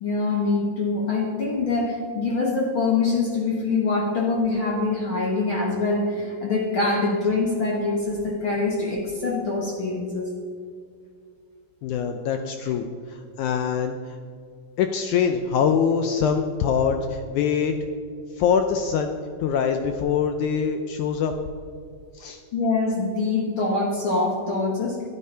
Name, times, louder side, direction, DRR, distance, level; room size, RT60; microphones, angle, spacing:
voice 1, 0.0-10.3 22.5-25.0, left 3 dB, 55° left, -1 dB, 1.5 m, -24 dB
voice 2, 11.8-14.2 14.8-17.7 18.3-21.3 22.1-22.4, left 7 dB, 85° left, 6 dB, 1.7 m, -24 dB
12.0 x 11.0 x 5.6 m, 2.3 s
omnidirectional pair, 4.2 m